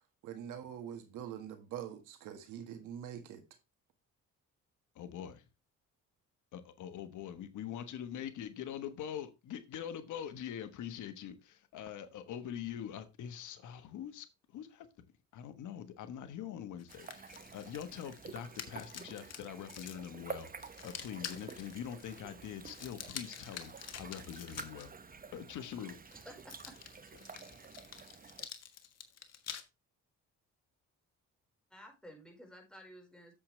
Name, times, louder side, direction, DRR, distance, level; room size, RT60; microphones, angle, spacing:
voice 1, 0.2-3.4, right 9 dB, 90° right, 1.7 m, -44 dB
voice 2, 4.9-5.4 6.5-14.9 15.3-26.0, left 9 dB, 80° left, 1.3 m, -44 dB
sound 1, 16.8-24.9 25.9-29.6, left 8 dB, 55° left, 1.5 m, -48 dB
sound 2, 16.9-28.5, right 5 dB, 30° right, 0.9 m, -50 dB
voice 3, 26.2-26.7 31.7-33.3, equal, 5° left, 4.7 m, -53 dB
8.4 x 7.6 x 3.2 m
cardioid pair, 90°, 30 cm